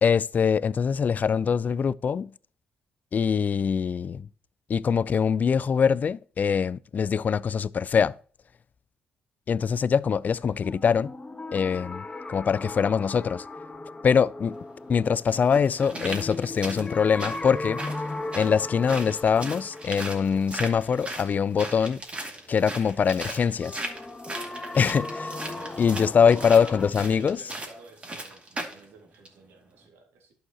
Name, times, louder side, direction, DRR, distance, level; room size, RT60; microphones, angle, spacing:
voice 1, 0.0-2.3 3.1-4.3 4.7-8.2 9.5-11.1 11.5-13.5 14.0-14.6 14.9-17.8 18.4-22.0 22.5-23.8 24.7-25.4 25.8-27.4, left 6 dB, 45° left, 0.4 m, -23 dB
sound 1, 10.6-21.5 23.6-26.9, left 2 dB, 20° left, 1.2 m, -37 dB
sound 2, 14.4-14.5 15.3-28.8 29.2-29.3, right 2 dB, 30° right, 2.5 m, -38 dB
voice 2, 25.4-25.9 26.3-30.3, right 3 dB, 70° right, 2.1 m, -51 dB
11.5 x 6.4 x 2.9 m
hypercardioid pair, 55°, 4 cm